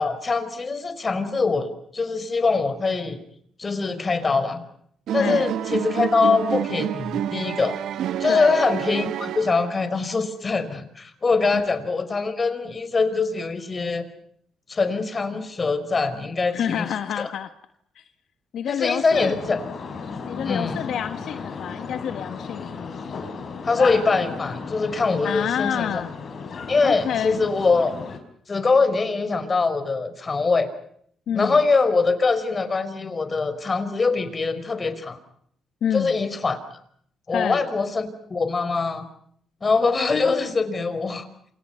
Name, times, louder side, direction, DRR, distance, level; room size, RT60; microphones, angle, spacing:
voice 1, 0.0-3.2 3.6-4.6 5.1-7.8 8.2-14.1 14.7-17.3 18.7-19.6 20.4-20.8 23.6-25.9 26.7-27.9 28.5-30.7 31.3-35.2 35.9-36.6 37.3-39.0 39.6-41.3, left 4 dB, 30° left, 11 dB, 4.8 m, -23 dB
sound 1, 5.1-10.0, right 10 dB, 75° right, 1.0 m, -28 dB
voice 2, 5.2-5.5 8.3-8.6 11.5-11.7 16.5-17.5 17.9-18.0 18.5-19.4 20.2-22.8 25.2-26.1 26.8-27.5 31.3-31.6 35.8-36.1 37.3-37.6, left 9 dB, 70° left, 9 dB, 1.5 m, -28 dB
sound 2, 19.1-28.2, left 5 dB, 50° left, 5.5 m, -35 dB
28.5 x 27.5 x 5.8 m, 0.66 s
cardioid pair, 90°, 0 cm